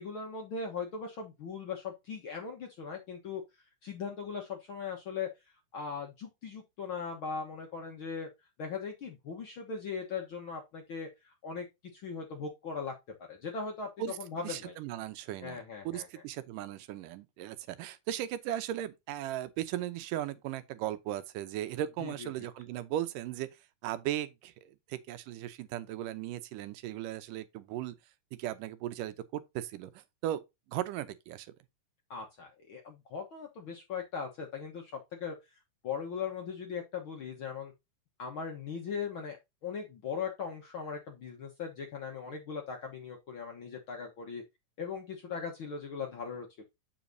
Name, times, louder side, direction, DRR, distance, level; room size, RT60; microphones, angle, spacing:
voice 1, 0.0-3.4 3.8-5.3 5.7-8.3 8.6-11.7 11.9-12.9 13.3-13.9 14.2-14.7 15.4-16.1 22.0-22.3 32.1-35.4 35.8-37.7 38.2-39.4 39.6-44.4 44.8-46.6, left 5 dB, 60° left, 1.4 m, -39 dB
voice 2, 14.4-15.6 15.9-23.5 23.8-28.0 28.4-30.4 30.7-31.5, right 12 dB, 90° right, 2.4 m, -37 dB
7.2 x 7.2 x 2.6 m
omnidirectional pair, 3.7 m